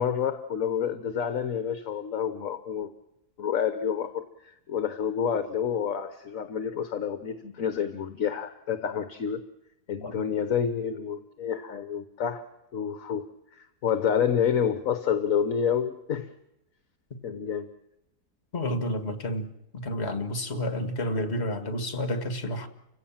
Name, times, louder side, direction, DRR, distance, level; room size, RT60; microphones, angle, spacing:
voice 1, 0.0-2.9 3.4-9.4 9.9-13.2 13.5-16.3 17.2-17.7, left 8 dB, 60° left, 1.5 m, -29 dB
voice 2, 18.5-22.7, left 1 dB, 40° left, 2.1 m, -30 dB
29.5 x 16.5 x 7.4 m
omnidirectional pair, 1.6 m